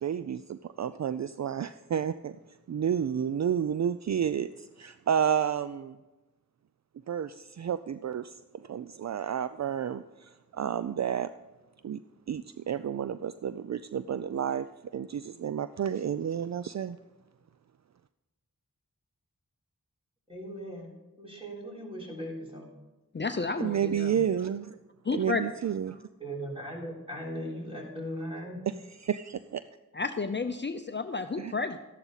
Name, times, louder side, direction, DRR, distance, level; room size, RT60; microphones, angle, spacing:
voice 1, 0.0-2.4 2.7-6.0 7.1-11.3 11.8-12.0 12.3-14.7 14.9-17.0 23.6-24.8 25.1-26.0 29.0-29.6 31.4-31.5, right 8 dB, 55° right, 13 dB, 0.4 m, -31 dB
voice 2, 20.3-20.9 21.2-22.7 26.2-28.6, equal, 15° right, -2 dB, 3.7 m, -38 dB
voice 3, 23.1-24.2 25.0-25.5 29.9-31.8, left 4 dB, 35° left, 8 dB, 0.6 m, -31 dB
12.5 x 11.0 x 4.1 m, 1.1 s
cardioid pair, 50°, 33 cm